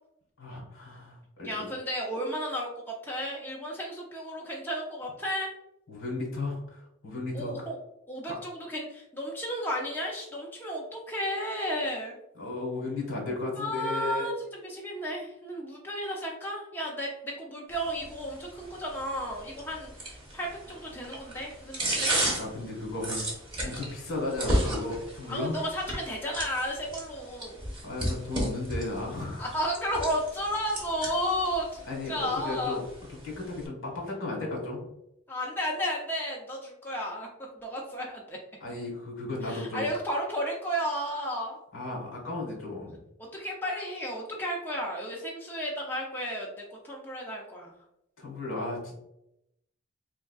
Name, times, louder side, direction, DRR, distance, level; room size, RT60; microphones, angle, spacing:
voice 1, 0.4-1.7 5.9-7.5 8.3-8.4 12.3-14.3 21.8-22.0 22.4-23.3 23.6-25.6 27.8-29.5 31.9-32.8 33.2-34.8 38.6-39.9 41.7-43.0 48.2-48.9, left 2 dB, 75° left, -1 dB, 1.5 m, -35 dB
voice 2, 1.4-5.5 7.3-7.8 8.1-12.2 13.5-22.1 25.3-27.6 29.4-32.8 35.3-37.3 37.6-38.4 39.4-41.6 43.3-47.7, equal, 10° left, -2 dB, 0.5 m, -33 dB
sound 1, 17.7-33.7, right 1 dB, 25° right, 1.1 m, -35 dB
3.5 x 3.5 x 2.3 m, 0.82 s
head